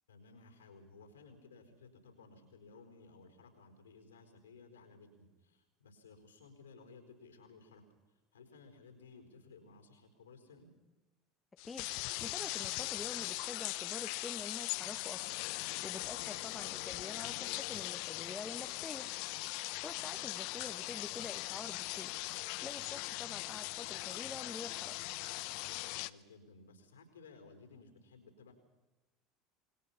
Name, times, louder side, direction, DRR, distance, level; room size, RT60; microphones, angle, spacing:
voice 1, 0.1-7.8 8.1-10.7 26.0-28.5, left 4 dB, 75° left, 6 dB, 4.3 m, -57 dB
sound 1, 11.6-26.1, left 21 dB, 55° left, 0.6 m, -40 dB
voice 2, 11.6-15.2 15.5-22.1 22.6-24.9, left 4 dB, 20° left, 8 dB, 1.2 m, -47 dB
27.0 x 21.0 x 5.8 m, 1.1 s
figure-of-eight pair, 70°, 0 cm